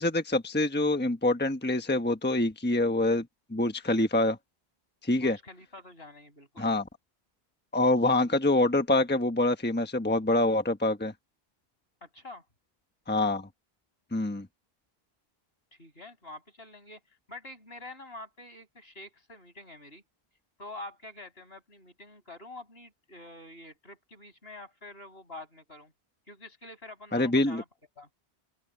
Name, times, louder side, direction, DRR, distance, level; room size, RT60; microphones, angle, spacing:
voice 1, 0.0-3.2 3.5-4.4 5.0-5.4 6.6-6.8 7.7-11.1 13.1-13.5 14.1-14.5 27.1-27.6, left 2 dB, 10° left, 1.1 m, -25 dB
voice 2, 5.1-6.7 12.0-12.4 15.7-17.0 17.3-20.0 20.6-25.9 26.3-27.6 28.0-28.1, left 2 dB, 70° left, 6.7 m, -46 dB
open air
omnidirectional pair, 1.1 m